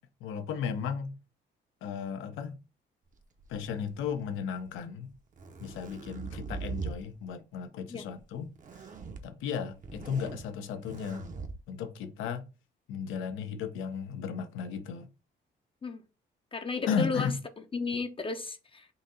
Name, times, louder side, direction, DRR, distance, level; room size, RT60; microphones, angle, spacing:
voice 1, 0.2-1.1 1.8-2.6 3.5-5.1 5.6-8.5 8.8-8.9 9.2-11.3 11.7-12.5 12.9-15.1 16.9-17.3, left 7 dB, 85° left, 0.6 m, -35 dB
sound 1, 3.4-4.2 5.1-7.0 8.6-9.2 9.7-10.4 10.8-11.5, right 5 dB, 40° right, 0.7 m, -41 dB
voice 2, 16.5-17.3 17.7-18.9, left 4 dB, 25° left, 0.5 m, -33 dB
3.9 x 2.7 x 3.9 m
cardioid pair, 90°, 20 cm